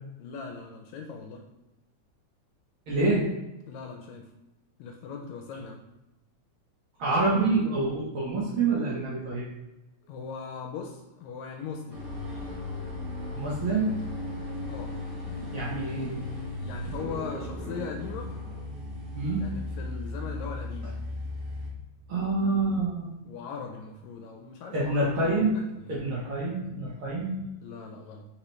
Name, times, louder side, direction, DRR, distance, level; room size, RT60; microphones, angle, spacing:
voice 1, 0.2-1.4 3.7-4.3 4.8-5.8 10.1-12.0 14.7-15.0 16.6-18.3 19.4-21.0 23.2-25.3 27.6-28.3, left 5 dB, 80° left, 3 dB, 1.7 m, -39 dB
voice 2, 2.9-3.3 7.0-9.5 13.3-13.9 15.4-16.2 19.1-19.5 22.1-23.1 24.7-25.5 25.9-27.4, right 3 dB, 70° right, -6 dB, 1.2 m, -27 dB
sound 1, 11.9-21.7, left 2 dB, 50° right, 1.3 m, -36 dB
4.3 x 4.0 x 3.0 m, 0.96 s
omnidirectional pair, 3.4 m